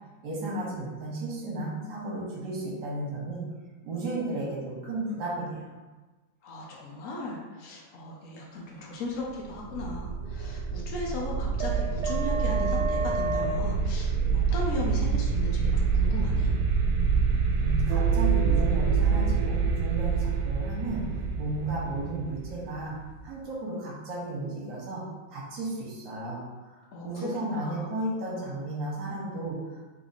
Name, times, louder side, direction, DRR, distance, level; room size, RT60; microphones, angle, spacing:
voice 1, 0.2-3.4 3.8-5.7 17.6-21.0 21.4-22.9 23.2-25.0 25.3-29.8, right 2 dB, 60° right, -4 dB, 1.6 m, -34 dB
voice 2, 6.4-16.5 26.9-27.8, left 2 dB, 70° left, -2 dB, 0.7 m, -37 dB
sound 1, 9.5-23.2, right 5 dB, 80° right, 1.4 m, -26 dB
3.5 x 3.0 x 4.0 m, 1.2 s
omnidirectional pair, 2.2 m